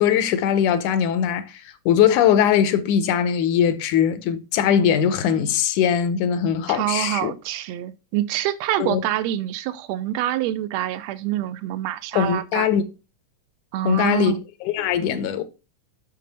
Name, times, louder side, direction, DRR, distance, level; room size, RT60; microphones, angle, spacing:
voice 1, 0.0-7.3 8.8-9.0 12.1-12.8 13.9-15.4, left 9 dB, 85° left, 2.2 m, -21 dB
voice 2, 6.7-12.7 13.7-14.4, right 13 dB, 80° right, 1.5 m, -26 dB
6.9 x 6.3 x 4.1 m
omnidirectional pair, 3.5 m